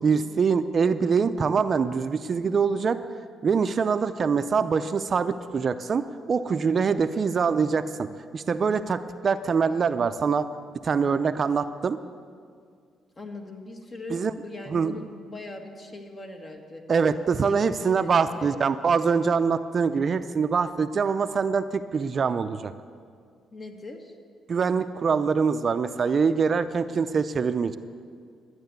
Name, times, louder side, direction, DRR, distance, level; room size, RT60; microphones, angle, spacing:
voice 1, 0.0-3.0 3.4-10.5 10.8-12.0 14.1-14.3 14.7-14.9 16.9-22.7 24.5-27.8, right 5 dB, 45° right, 11 dB, 0.5 m, -24 dB
voice 2, 13.2-16.8 17.5-18.7 23.5-24.1, left 2 dB, 35° left, 3 dB, 1.9 m, -40 dB
12.5 x 9.5 x 8.1 m, 2.1 s
cardioid pair, 90°, 0 cm